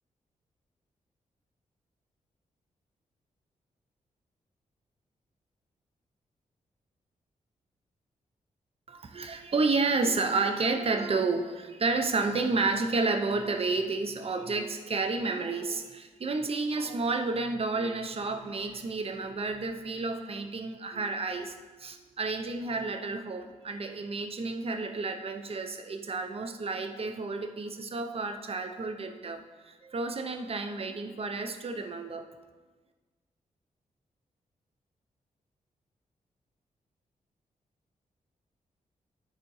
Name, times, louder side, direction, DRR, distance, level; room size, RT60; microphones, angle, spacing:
voice 1, 8.9-21.5 21.8-32.3, right 3 dB, 45° right, 7 dB, 0.8 m, -31 dB
10.5 x 4.2 x 4.8 m, 1.3 s
cardioid pair, 75°, 14 cm